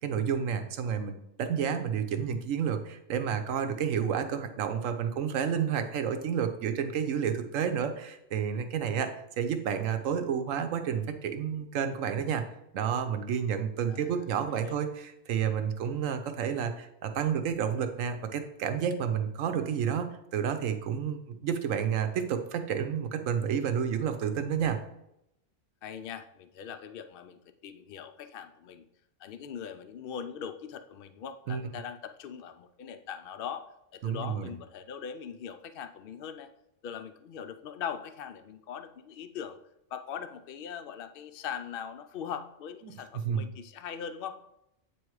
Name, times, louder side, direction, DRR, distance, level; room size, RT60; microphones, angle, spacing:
voice 1, 0.0-12.4 12.7-24.8 31.5-31.6 34.0-34.5 43.2-43.5, right 7 dB, 75° right, 8 dB, 1.1 m, -30 dB
voice 2, 25.8-28.9 29.2-33.7 33.9-36.5 36.8-39.6 39.9-44.4, left 8 dB, 65° left, 9 dB, 0.5 m, -41 dB
8.5 x 3.1 x 4.7 m, 0.82 s
omnidirectional pair, 1.4 m